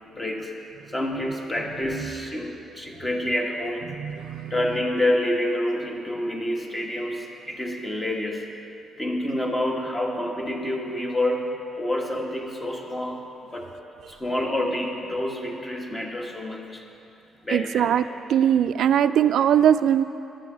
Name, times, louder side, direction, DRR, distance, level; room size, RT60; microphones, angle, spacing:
voice 1, 0.1-0.5 0.9-3.9 4.5-8.5 9.0-13.7 14.1-16.8 17.4-17.9, left 1 dB, 20° left, 1 dB, 1.5 m, -28 dB
voice 2, 4.0-4.5 17.5-18.0 18.3-20.0, right 9 dB, 75° right, 13 dB, 0.3 m, -20 dB
10.5 x 7.7 x 7.2 m, 2.8 s
cardioid pair, 90°, 0 cm